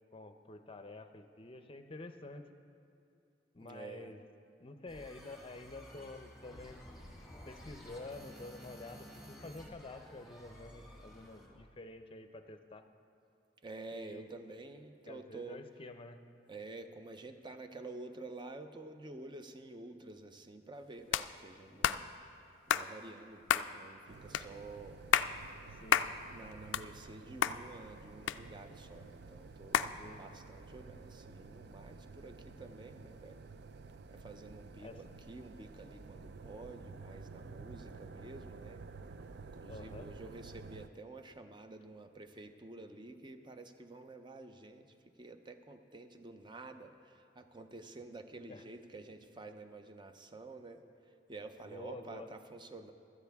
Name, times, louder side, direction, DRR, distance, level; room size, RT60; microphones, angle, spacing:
voice 1, 0.1-2.5 3.5-4.2 4.6-6.8 7.5-12.8 13.9-14.3 15.1-16.2 25.4-26.1 30.0-30.2 34.8-35.4 39.7-40.1 48.5-48.6 51.6-52.3, left 2 dB, 30° left, 8 dB, 0.6 m, -49 dB
voice 2, 3.6-4.1 13.6-15.6 16.5-22.1 22.7-25.0 26.3-33.4 34.1-38.8 39.4-50.8 51.3-52.9, right 2 dB, 25° right, 8 dB, 0.6 m, -50 dB
sound 1, 4.9-11.6, equal, ahead, 1.9 m, -53 dB
sound 2, 21.1-21.3 21.8-22.0 22.7-22.9 23.5-23.7 24.3-24.5 25.0-25.3 25.9-26.1 26.5-27.2 27.4-27.6 28.3-28.8 29.7-29.9, left 9 dB, 85° left, 0.3 m, -30 dB
sound 3, 24.1-40.9, right 4 dB, 60° right, 0.4 m, -51 dB
16.5 x 12.5 x 3.5 m, 2.7 s
head